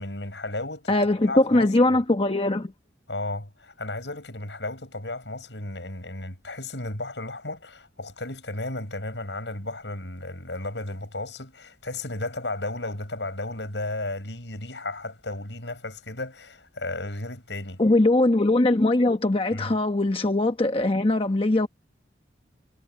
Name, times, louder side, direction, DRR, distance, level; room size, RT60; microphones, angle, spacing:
voice 1, 0.0-0.9 1.2-1.7 3.1-17.8 19.5-19.7, left 2 dB, 85° left, 7.8 m, -34 dB
voice 2, 0.9-2.7 17.8-21.7, left 2 dB, 30° left, 1.0 m, -21 dB
head